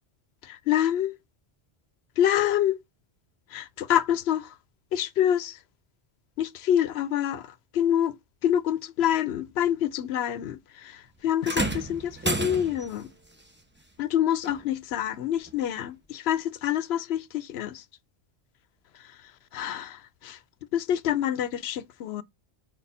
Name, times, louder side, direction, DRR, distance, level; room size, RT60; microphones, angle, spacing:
voice 1, 0.4-1.1 2.2-2.8 3.5-4.6 4.9-5.6 6.4-8.2 8.4-13.1 14.0-17.8 19.0-19.2 19.5-20.4 20.7-22.2, left 10 dB, 80° left, 0.9 m, -27 dB
sound 1, 11.4-13.0 14.4-14.6 15.5-15.6, right 2 dB, 10° right, 0.8 m, -30 dB
5.1 x 4.1 x 5.3 m
omnidirectional pair, 1.1 m